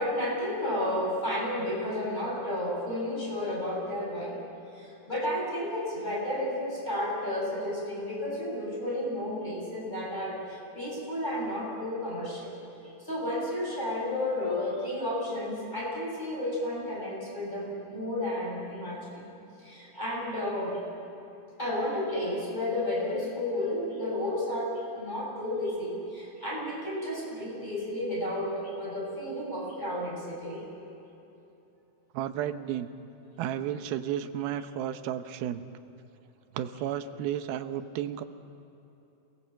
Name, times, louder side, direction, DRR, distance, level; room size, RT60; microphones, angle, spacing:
voice 1, 0.0-4.4 4.7-12.5 13.0-19.3 19.6-20.8 21.6-30.6, left 1 dB, 10° left, -4 dB, 8.0 m, -32 dB
voice 2, 32.1-32.9 33.4-35.6 36.5-38.2, right 10 dB, 90° right, 9 dB, 2.9 m, -32 dB
28.5 x 21.0 x 7.7 m, 3.0 s
omnidirectional pair, 4.2 m